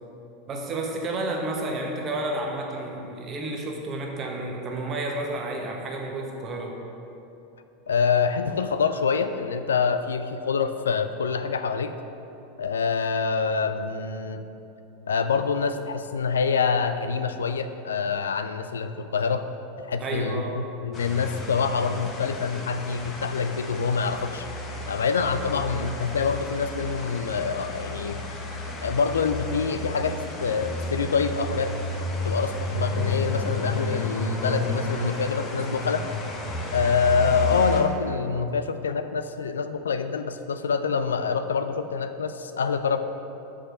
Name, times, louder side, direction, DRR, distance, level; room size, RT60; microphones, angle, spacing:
voice 1, 0.5-6.7 20.0-20.5, right 2 dB, 35° right, 0 dB, 1.3 m, -31 dB
voice 2, 7.9-11.9 12.6-14.4 15.1-19.5 19.8-24.5 24.9-28.2 28.8-31.7 32.2-36.0 36.7-43.0, left 5 dB, 75° left, 9 dB, 0.3 m, -26 dB
sound 1, 20.9-37.8, left 1 dB, 35° left, 1.0 m, -32 dB
6.5 x 5.0 x 6.1 m, 2.9 s
figure-of-eight pair, 85°, 0 cm